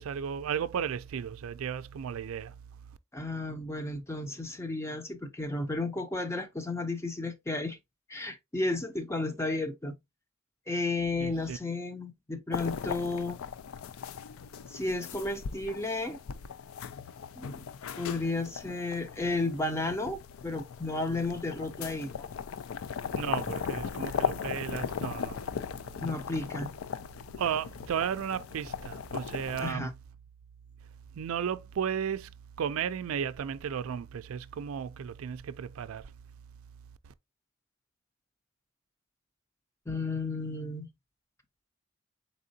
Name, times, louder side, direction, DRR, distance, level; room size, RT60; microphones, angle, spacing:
voice 1, 0.0-2.5 11.2-11.6 23.1-25.4 27.4-29.9 31.2-32.3 32.6-36.0, right 8 dB, 85° right, 0.4 m, -34 dB
voice 2, 3.1-7.8 8.1-10.0 10.7-13.4 14.7-16.2 17.4-17.7 18.0-22.3 26.0-26.7 29.6-29.9 39.9-40.9, left 2 dB, 15° left, 0.5 m, -33 dB
sound 1, 12.5-29.7, left 7 dB, 85° left, 0.4 m, -38 dB
4.2 x 3.7 x 2.7 m
head